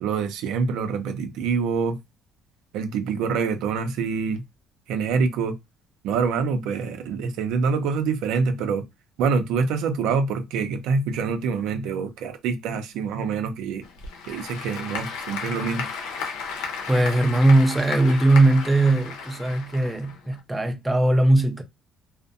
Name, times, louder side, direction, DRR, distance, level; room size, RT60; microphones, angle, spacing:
voice 1, 0.0-2.0 2.7-4.4 4.9-5.5 6.0-8.8 9.2-13.8 14.3-15.9, right 5 dB, 80° right, 0.5 m, -25 dB
Applause / Crowd, 13.8-20.4, left 5 dB, 90° left, 0.7 m, -34 dB
voice 2, 16.9-21.6, right 2 dB, 10° right, 0.4 m, -19 dB
2.5 x 2.1 x 2.6 m
cardioid pair, 110°, 0 cm